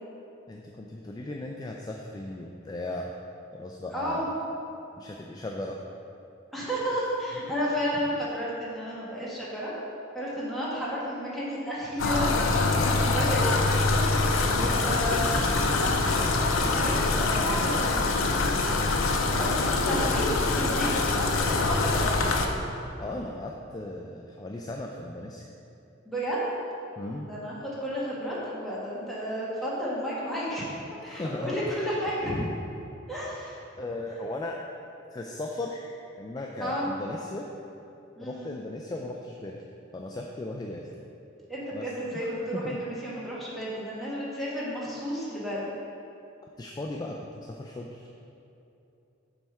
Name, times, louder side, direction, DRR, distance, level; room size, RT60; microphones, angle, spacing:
voice 1, 0.5-3.1 3.5-4.2 5.0-5.8 12.9-13.1 14.4-15.3 20.0-20.2 23.0-25.5 27.0-27.3 31.1-31.7 32.2-32.5 33.8-34.6 35.1-37.5 38.2-39.6 39.9-40.9 41.7-41.9 42.1-42.8 46.6-48.1, left 2 dB, 20° left, 0 dB, 0.3 m, -37 dB
voice 2, 3.9-4.3 6.5-9.7 10.1-12.3 12.6-13.7 14.1-14.3 14.8-15.5 16.6-18.7 19.4-22.3 26.0-26.6 27.2-30.7 31.0-32.3 33.1-33.6 36.6-36.9 38.2-38.5 41.5-45.7, equal, ahead, -8 dB, 1.4 m, -32 dB
sound 1, 12.0-22.5, left 3 dB, 85° left, 0.6 m, -24 dB
7.3 x 3.5 x 5.5 m, 2.8 s
head